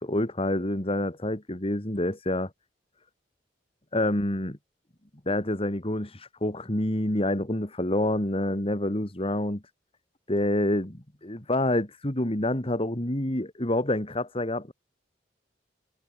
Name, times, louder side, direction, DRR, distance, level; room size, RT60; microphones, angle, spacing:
voice 1, 0.0-2.5 3.9-4.6 5.3-9.6 10.3-14.7, left 1 dB, 35° left, 2.7 m, -27 dB
head